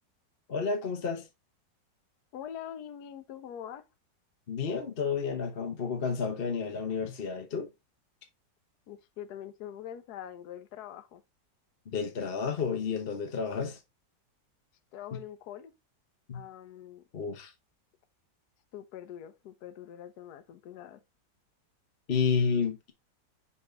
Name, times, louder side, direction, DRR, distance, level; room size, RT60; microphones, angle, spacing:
voice 1, 0.5-1.3 4.5-7.7 11.9-13.8 15.1-15.2 16.3-16.4 17.1-17.5 22.1-22.9, left 5 dB, 40° left, 1.0 m, -31 dB
voice 2, 2.3-3.8 8.9-11.2 14.9-15.7 16.3-17.0 18.7-21.0, left 10 dB, 65° left, 1.2 m, -44 dB
5.7 x 5.3 x 3.9 m
omnidirectional pair, 1.9 m